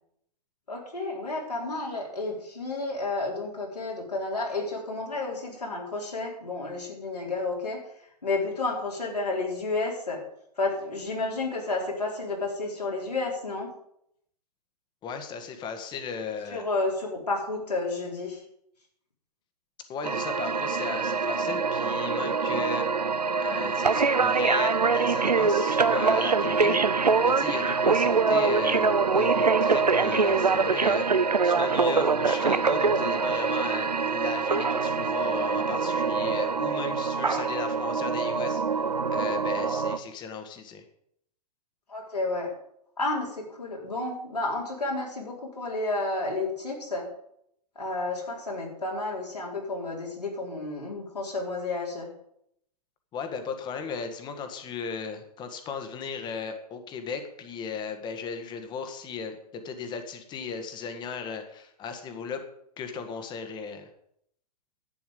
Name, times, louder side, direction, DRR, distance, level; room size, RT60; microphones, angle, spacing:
voice 1, 0.7-7.8 8.2-10.2 10.6-13.7 16.5-18.4 41.9-42.5 43.0-47.1 47.8-52.1, left 2 dB, 80° left, -2 dB, 4.2 m, -31 dB
voice 2, 15.0-16.6 19.9-22.9 23.4-26.8 27.2-38.6 39.1-40.8 53.1-62.4 62.8-63.9, left 5 dB, 20° left, 7 dB, 1.7 m, -36 dB
sound 1, 20.0-40.0, right 4 dB, 85° right, 0.8 m, -24 dB
11.5 x 9.2 x 5.3 m, 0.73 s
figure-of-eight pair, 115°, 20 cm